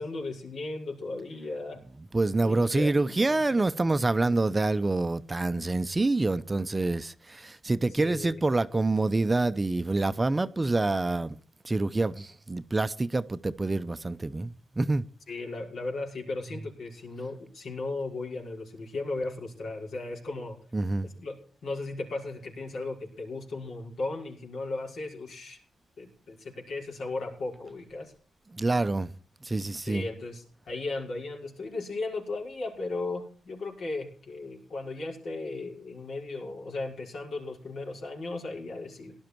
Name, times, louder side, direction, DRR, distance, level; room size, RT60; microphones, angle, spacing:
voice 1, 0.0-1.8 2.4-3.7 8.0-8.4 15.3-20.6 21.0-21.4 21.6-25.6 26.0-28.1 29.9-39.1, left 3 dB, 75° left, 5.4 m, -36 dB
voice 2, 2.1-11.4 11.6-15.0 20.7-21.1 28.5-29.1 29.4-30.0, right 2 dB, 20° right, 0.7 m, -27 dB
18.0 x 11.5 x 4.6 m
cardioid pair, 95°, 0 cm